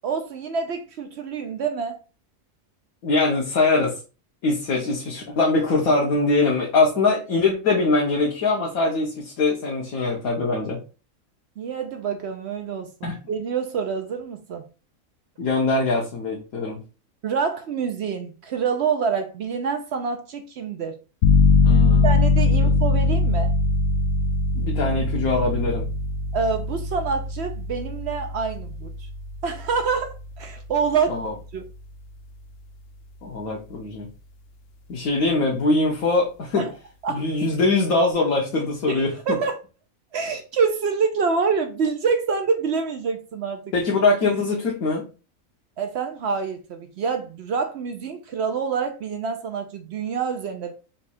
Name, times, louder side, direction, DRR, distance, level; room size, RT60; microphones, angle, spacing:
voice 1, 0.0-2.0 11.6-14.7 17.2-21.0 22.0-23.6 26.3-29.1 29.4-31.2 31.5-31.6 36.6-36.7 37.0-37.3 38.9-39.6 40.1-43.7 45.8-50.7, right 5 dB, 60° right, 0.8 m, -26 dB
voice 2, 3.0-3.9 4.4-10.8 13.0-13.2 15.4-16.8 21.6-22.1 24.5-25.9 31.1-31.3 33.2-34.1 34.9-36.7 37.1-39.4 43.7-45.0, left 3 dB, 90° left, 1.4 m, -22 dB
sound 1, 21.2-31.7, left 3 dB, 60° left, 0.6 m, -22 dB
4.2 x 2.3 x 4.2 m
omnidirectional pair, 1.4 m